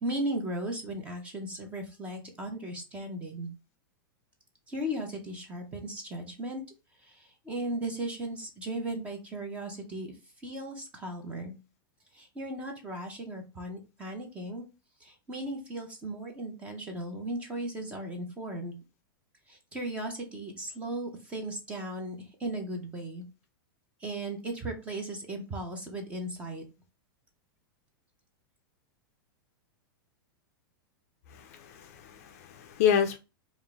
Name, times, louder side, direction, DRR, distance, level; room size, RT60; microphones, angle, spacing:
voice 1, 0.0-3.5 4.7-6.6 7.0-10.1 10.4-11.5 12.1-14.6 15.0-18.8 19.5-23.2 24.0-26.6, right 1 dB, 10° right, 0.6 m, -36 dB
voice 2, 31.3-33.2, left 8 dB, 40° left, 0.4 m, -28 dB
3.8 x 2.4 x 3.4 m
supercardioid pair, 175°, 12 cm